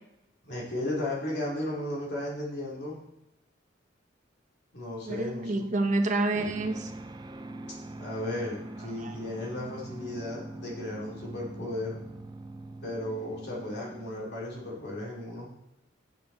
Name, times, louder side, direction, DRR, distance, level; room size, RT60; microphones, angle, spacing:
voice 1, 0.5-3.0 4.7-5.6 8.0-12.0 12.8-15.5, left 1 dB, 60° left, -4 dB, 3.0 m, -35 dB
voice 2, 5.1-6.9 9.0-9.1, right 2 dB, 40° right, 4 dB, 1.1 m, -28 dB
sound 1, 6.3-14.6, right 1 dB, 25° right, 0.5 m, -43 dB
9.7 x 7.1 x 4.0 m, 0.92 s
head